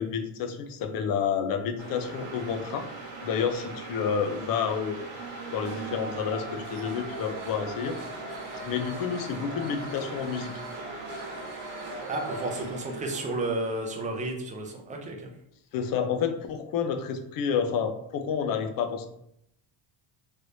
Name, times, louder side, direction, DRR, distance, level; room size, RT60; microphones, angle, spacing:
voice 1, 0.0-2.9 3.2-5.0 5.5-8.0 8.6-10.5 15.7-19.1, left 7 dB, 50° left, 6 dB, 0.5 m, -29 dB
sound 1, 1.8-14.1, right 3 dB, 60° right, 1.1 m, -39 dB
voice 2, 12.1-15.3, right 2 dB, 20° right, 2 dB, 0.3 m, -32 dB
3.2 x 3.1 x 2.6 m, 0.74 s
cardioid pair, 155°, 46 cm